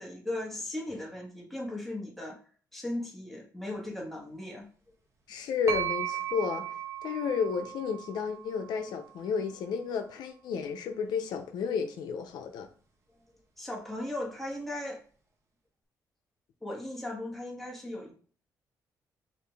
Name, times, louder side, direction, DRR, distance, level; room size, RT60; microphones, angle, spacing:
voice 1, 0.0-2.4 2.7-4.7 13.1-13.2 13.6-15.0 16.6-18.1, left 1 dB, 5° left, 1.7 m, -37 dB
voice 2, 5.3-6.7 7.0-12.7, left 6 dB, 85° left, 0.6 m, -32 dB
sound 1, 5.7-9.4, right 9 dB, 45° right, 1.2 m, -37 dB
4.9 x 2.7 x 3.4 m
cardioid pair, 95°, 7 cm